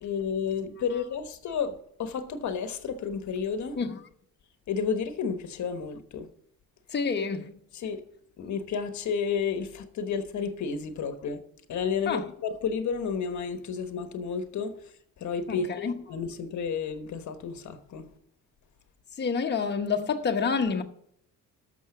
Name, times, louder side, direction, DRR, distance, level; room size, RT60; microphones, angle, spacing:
voice 1, 0.0-3.8 4.7-6.3 7.7-8.0 8.4-11.4 11.7-18.1, left 6 dB, 60° left, 1.2 m, -31 dB
voice 2, 6.9-7.6 12.1-12.2 15.5-16.0 19.2-20.8, left 5 dB, 30° left, 1.1 m, -28 dB
12.5 x 6.7 x 5.9 m
cardioid pair, 145°, 33 cm